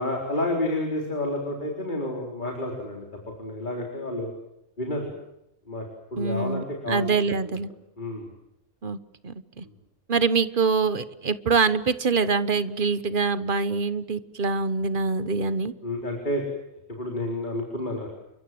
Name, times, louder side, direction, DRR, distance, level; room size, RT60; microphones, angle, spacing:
voice 1, 0.0-3.1 3.4-4.3 4.8-5.1 5.7-5.8 6.1-7.6 8.0-8.3 9.6-9.7 15.8-16.4 16.9-18.1, left 1 dB, 35° left, 1 dB, 4.5 m, -30 dB
voice 2, 6.2-7.7 8.8-9.0 9.2-9.6 10.1-15.7, right 4 dB, 40° right, 14 dB, 1.3 m, -25 dB
29.5 x 24.0 x 7.8 m, 0.86 s
omnidirectional pair, 1.4 m